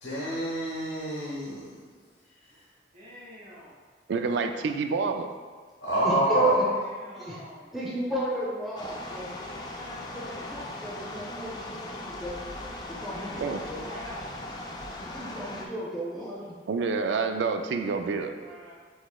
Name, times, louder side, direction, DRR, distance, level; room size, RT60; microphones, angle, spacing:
voice 1, 0.0-1.7 5.8-6.6, right 1 dB, 90° left, -8 dB, 0.9 m, -27 dB
voice 2, 2.9-3.7 6.3-7.7 9.4-10.4 12.9-14.6 16.1-16.5 16.8-18.7, equal, 45° right, -9 dB, 1.4 m, -47 dB
voice 3, 4.1-5.3 13.4-13.6 16.7-18.3, right 4 dB, 85° right, 7 dB, 0.3 m, -28 dB
voice 4, 6.0-6.6 7.1-7.4 7.7-9.5 10.5-12.4 12.9-13.9 15.1-16.5, right 2 dB, ahead, -7 dB, 0.8 m, -33 dB
sound 1, 8.8-15.7, left 1 dB, 25° left, 0.3 m, -39 dB
6.2 x 3.1 x 2.3 m, 1.5 s
head